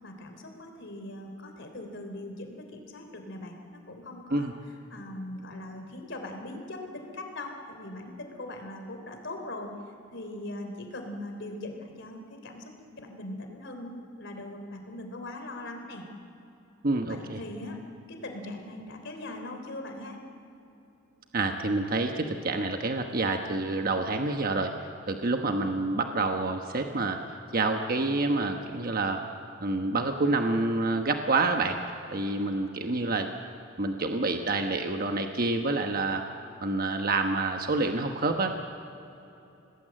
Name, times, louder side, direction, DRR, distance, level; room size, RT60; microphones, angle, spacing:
voice 1, 0.0-4.5 4.9-9.7 10.1-12.7 13.0-16.0 17.1-17.8 18.1-20.2, left 1 dB, 65° left, 4 dB, 3.5 m, -40 dB
voice 2, 16.8-17.4 21.3-24.7 25.1-27.2 27.5-29.2 29.6-31.8 32.1-33.3 33.8-36.2 36.6-38.6, right 3 dB, 45° right, 4 dB, 1.2 m, -27 dB
26.5 x 19.0 x 7.7 m, 3.0 s
head